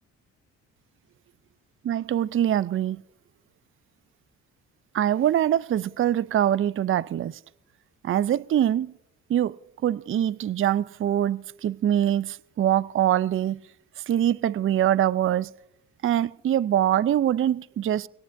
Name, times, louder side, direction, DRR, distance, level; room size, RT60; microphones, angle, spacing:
voice 1, 1.9-3.0 4.9-7.4 8.0-8.9 9.3-13.6 14.1-15.5 16.0-18.1, right 11 dB, 40° right, 0.5 m, -24 dB
23.5 x 17.5 x 2.6 m
supercardioid pair, 55°, 34 cm